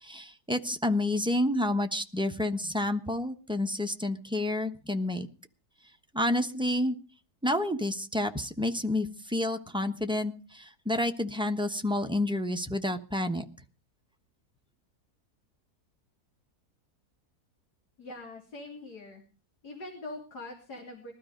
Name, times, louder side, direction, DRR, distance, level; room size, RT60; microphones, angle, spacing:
voice 1, 0.0-5.3 6.1-7.0 7.4-13.4, left 1 dB, 5° right, 5 dB, 0.9 m, -29 dB
voice 2, 18.0-19.2 19.6-21.1, left 2 dB, 90° left, 1 dB, 3.6 m, -43 dB
21.0 x 12.5 x 5.2 m, 0.37 s
omnidirectional pair, 1.7 m